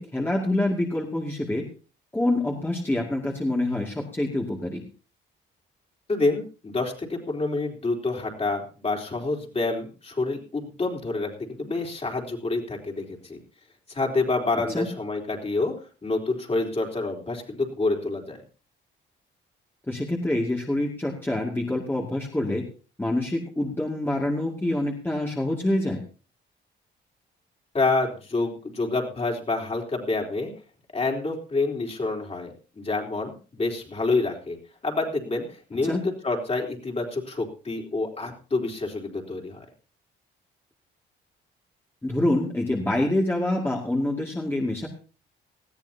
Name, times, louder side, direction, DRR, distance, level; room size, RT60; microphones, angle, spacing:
voice 1, 0.0-1.6 2.1-4.8 14.7-14.9 19.9-22.6 23.0-26.0 35.8-36.0 42.0-44.9, left 1 dB, 10° left, -1 dB, 2.4 m, -26 dB
voice 2, 6.1-13.4 13.9-15.7 16.0-18.4 27.7-30.5 30.9-34.6 34.8-39.7, left 3 dB, 30° left, 1 dB, 3.9 m, -28 dB
19.5 x 14.0 x 2.9 m, 0.36 s
cardioid pair, 90°, 20 cm